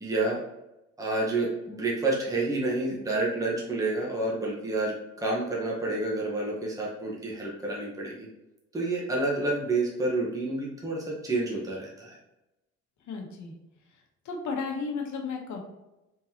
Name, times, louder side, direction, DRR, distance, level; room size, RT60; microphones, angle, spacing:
voice 1, 0.0-0.4 1.0-8.3 8.7-12.2, right 2 dB, 10° right, -4 dB, 1.1 m, -29 dB
voice 2, 13.1-13.5 14.2-15.6, left 4 dB, 70° left, 2 dB, 1.0 m, -33 dB
4.0 x 3.8 x 2.8 m, 0.95 s
cardioid pair, 90°, 30 cm